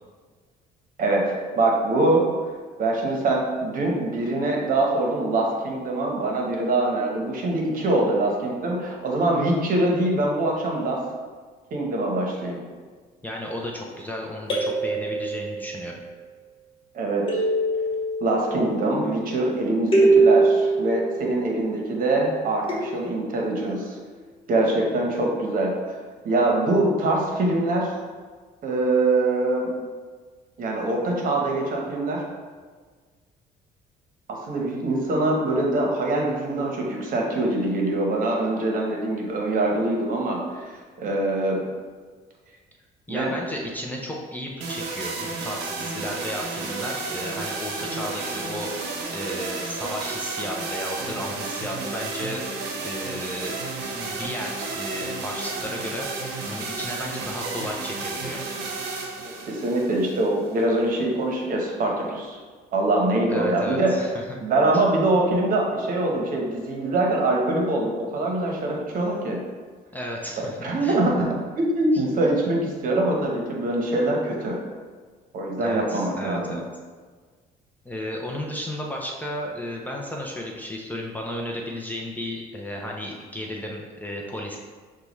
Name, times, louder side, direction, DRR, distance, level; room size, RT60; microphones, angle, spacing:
voice 1, 1.0-2.3 2.8-11.0 11.7-12.6 16.9-17.4 18.2-24.0 24.5-25.8 26.2-27.9 28.6-29.7 30.6-32.2 34.3-41.6 43.1-43.3 59.2-62.4 62.7-63.9 64.4-69.4 70.4-71.3 71.6-74.6 75.3-76.6, right 2 dB, 55° right, -1 dB, 1.0 m, -24 dB
voice 2, 13.2-15.9 43.1-52.4 52.8-53.6 53.9-56.1 56.5-58.4 63.3-64.4 64.7-64.8 69.9-71.0 75.6-76.6 77.9-84.6, left 1 dB, 10° left, -2 dB, 0.5 m, -34 dB
sound 1, 14.5-16.0 17.3-19.3 19.9-22.1 22.7-24.0, right 3 dB, 35° left, 1.2 m, -24 dB
sound 2, 44.6-60.6, right 3 dB, 80° right, 0.7 m, -32 dB
6.6 x 2.3 x 3.1 m, 1.5 s
cardioid pair, 110°, 17 cm